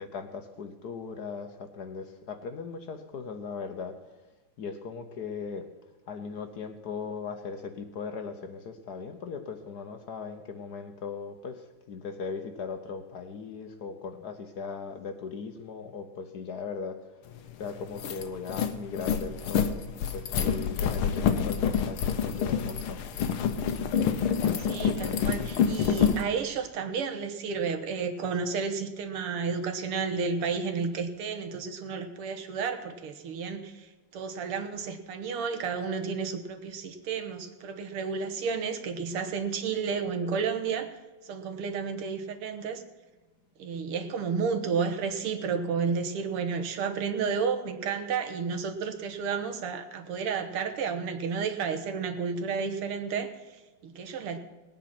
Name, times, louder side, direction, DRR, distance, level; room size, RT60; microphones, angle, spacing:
voice 1, 0.0-4.0 4.6-5.7 6.1-17.3 17.6-19.8 20.1-23.0, left 5 dB, 55° left, 8 dB, 1.3 m, -38 dB
sound 1, 17.4-17.5 17.8-26.2, left 7 dB, 75° left, 1.7 m, -27 dB
voice 2, 24.6-42.8 43.6-54.4, right 5 dB, 90° right, 6 dB, 2.2 m, -32 dB
19.5 x 9.1 x 6.0 m, 1.2 s
omnidirectional pair, 2.4 m